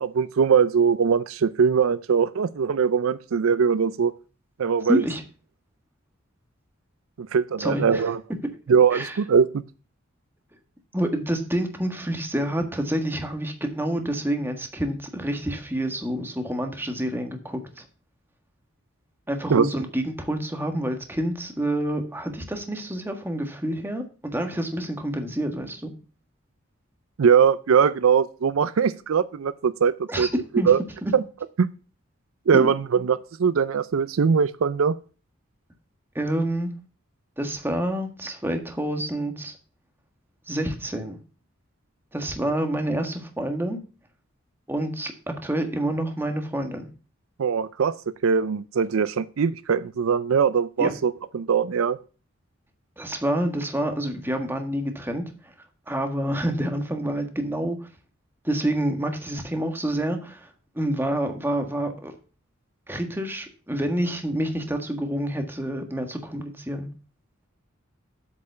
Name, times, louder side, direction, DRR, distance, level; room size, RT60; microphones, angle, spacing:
voice 1, 0.0-4.1 4.6-5.0 7.2-8.2 8.7-9.6 19.5-19.7 27.2-30.3 30.7-30.8 31.1-31.2 31.6-31.7 32.5-34.9 47.4-48.0 48.2-52.0, right 6 dB, 80° right, 16 dB, 0.4 m, -21 dB
voice 2, 4.8-5.2 7.6-8.1 8.9-9.2 10.9-17.8 19.3-24.0 24.3-25.9 30.1-30.3 30.6-30.7 31.0-31.1 32.5-33.0 36.1-36.7 37.4-39.5 40.5-41.2 42.1-43.8 44.7-46.9 50.8-50.9 53.0-55.5 55.9-57.9 58.4-60.5 60.7-62.1 62.9-66.9, right 1 dB, 10° right, 5 dB, 1.5 m, -28 dB
8.3 x 5.4 x 6.8 m, 0.36 s
head